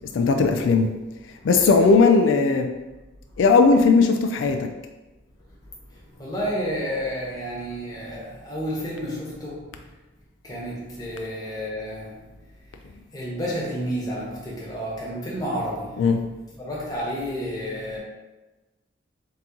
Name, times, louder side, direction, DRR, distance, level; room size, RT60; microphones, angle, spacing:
voice 1, 0.1-1.0 1.4-2.7 3.4-4.7 16.0-16.3, left 4 dB, 85° left, 6 dB, 0.3 m, -18 dB
voice 2, 5.9-9.7 10.4-12.3 13.1-16.1 16.6-18.0, equal, 20° left, -5 dB, 1.0 m, -31 dB
3.6 x 2.9 x 3.7 m, 1.1 s
head